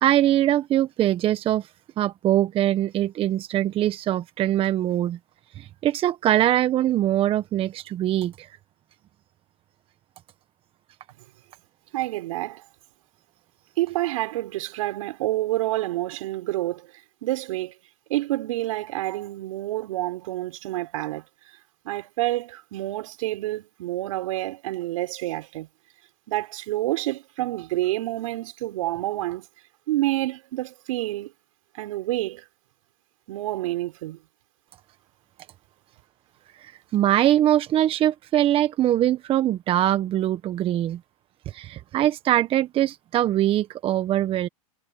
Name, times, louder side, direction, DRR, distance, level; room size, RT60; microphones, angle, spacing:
voice 1, 0.0-1.7 2.0-5.2 5.5-8.5 36.6-41.0 41.5-44.5, right 12 dB, 30° right, 1.2 m, -22 dB
voice 2, 11.9-12.6 13.8-16.9 17.2-17.7 18.1-21.3 21.8-25.7 26.3-29.5 29.9-31.3 31.7-32.4 33.3-34.2, right 16 dB, 65° right, 5.4 m, -28 dB
hypercardioid pair, 120°, 19 cm